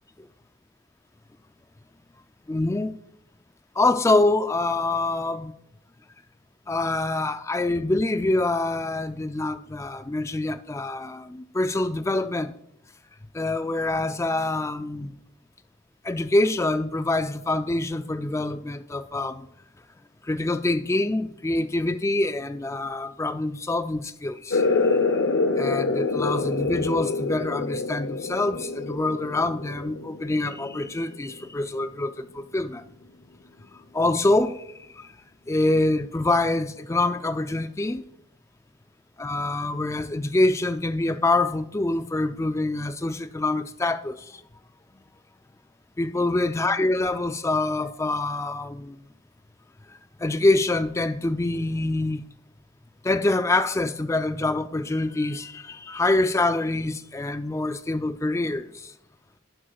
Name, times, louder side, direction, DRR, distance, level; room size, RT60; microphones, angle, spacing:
voice 1, 2.5-2.9 3.8-5.5 6.7-12.5 13.3-15.1 16.0-19.5 20.3-25.0 25.6-32.8 33.9-34.6 35.0-35.1 35.5-38.0 39.2-44.4 46.0-49.0 50.2-52.2 53.0-58.9, left 2 dB, 15° left, 0.3 m, -25 dB
sound 1, 24.5-31.7, left 3 dB, 75° left, 0.7 m, -26 dB
11.0 x 10.0 x 2.4 m
head